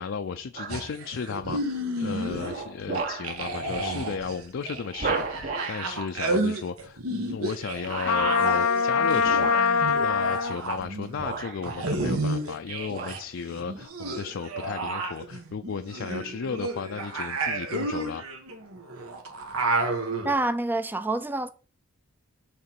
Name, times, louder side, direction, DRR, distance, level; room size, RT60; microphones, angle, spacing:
voice 1, 0.0-18.2, left 5 dB, 60° left, 0.4 m, -34 dB
sound 1, 0.6-0.9 1.4-1.8 2.3-3.4 3.7-3.9 4.3-4.4 5.0-5.9 7.8-8.3 9.2-9.9 10.8-10.9 11.2-12.5 12.8-13.2 13.8-13.9, right 4 dB, 40° right, 1.0 m, -34 dB
sound 2, 0.7-2.6 2.9-13.2 13.5-20.3, right 2 dB, 85° right, 1.5 m, -31 dB
Trumpet, 8.0-10.6, left 6 dB, 85° left, 0.7 m, -23 dB
voice 2, 20.2-21.5, right 2 dB, 10° right, 0.4 m, -27 dB
6.6 x 4.0 x 6.0 m
head